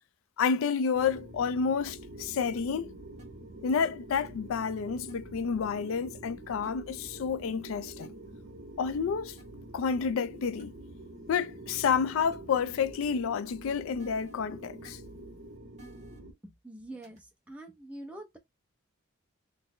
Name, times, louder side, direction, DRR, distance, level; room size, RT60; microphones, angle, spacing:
voice 1, 0.4-2.9 3.6-8.1 8.8-9.4 9.7-10.7 11.3-15.0, left 6 dB, 70° left, 0.3 m, -30 dB
sound 1, 0.9-16.3, right 1 dB, 60° right, 0.9 m, -47 dB
sound 2, 1.0-1.2 2.6-2.7 3.2-3.3 4.2-4.3 5.1-5.2 6.6-6.7 8.0-8.1 9.4-9.5 10.2-10.3 10.6-10.7 12.3-12.4 12.8-12.9 14.0-14.4 14.8-14.9 15.8-16.2 17.0-17.2, right 2 dB, 35° right, 1.1 m, -54 dB
voice 2, 16.4-18.4, right 1 dB, 5° right, 0.6 m, -45 dB
3.7 x 2.0 x 3.1 m
head